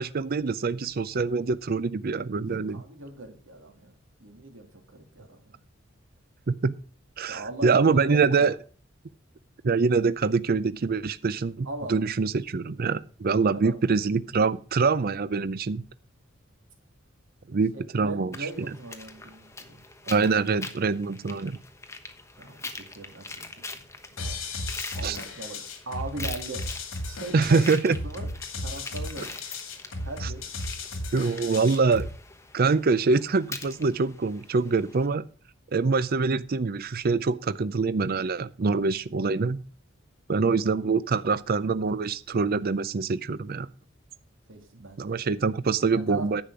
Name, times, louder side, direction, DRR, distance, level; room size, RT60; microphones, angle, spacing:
voice 1, 0.0-2.8 6.5-6.8 7.2-8.6 9.6-15.8 17.5-18.3 20.1-21.6 25.0-25.2 27.3-28.0 30.2-30.3 31.1-32.1 32.5-35.2 35.7-39.6 40.3-43.7 45.0-46.4, right 4 dB, 50° right, 15 dB, 0.5 m, -25 dB
voice 2, 2.4-3.9 4.2-5.6 7.3-8.5 11.6-12.0 13.5-13.8 17.7-19.8 22.4-23.6 24.1-24.4 24.9-26.7 27.0-28.3 28.6-29.3 30.0-30.4 44.5-45.1 45.9-46.4, right 2 dB, 70° right, 3 dB, 2.9 m, -39 dB
sound 1, 18.3-35.1, left 3 dB, 15° left, 1.1 m, -43 dB
sound 2, 24.2-32.2, left 2 dB, 85° left, 2.4 m, -35 dB
10.5 x 7.4 x 4.9 m, 0.38 s
head